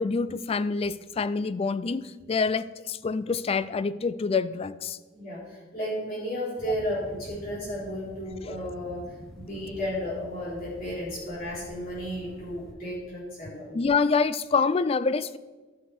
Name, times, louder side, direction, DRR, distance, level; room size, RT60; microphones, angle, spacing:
voice 1, 0.0-5.0 13.7-15.4, left 4 dB, 30° left, 16 dB, 0.3 m, -26 dB
voice 2, 5.1-9.0 9.3-13.7, equal, 50° left, -8 dB, 3.8 m, -33 dB
sound 1, 6.6-12.7, equal, 5° left, 1.0 m, -47 dB
12.5 x 6.4 x 4.7 m, 1.3 s
head